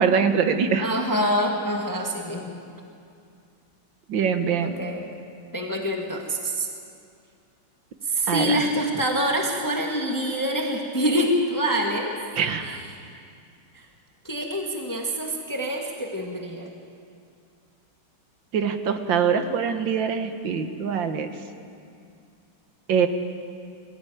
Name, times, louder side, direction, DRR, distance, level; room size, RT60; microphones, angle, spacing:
voice 1, 0.0-0.9 4.1-4.8 8.3-8.6 12.4-12.8 18.5-21.3 22.9-23.1, right 6 dB, 65° right, 7 dB, 1.9 m, -23 dB
voice 2, 0.8-2.6 4.6-5.0 5.5-6.7 8.0-12.2 12.6-13.1 13.7-13.8 14.2-16.7, equal, 10° left, 0 dB, 1.6 m, -26 dB
20.5 x 14.5 x 9.3 m, 2.4 s
omnidirectional pair, 2.3 m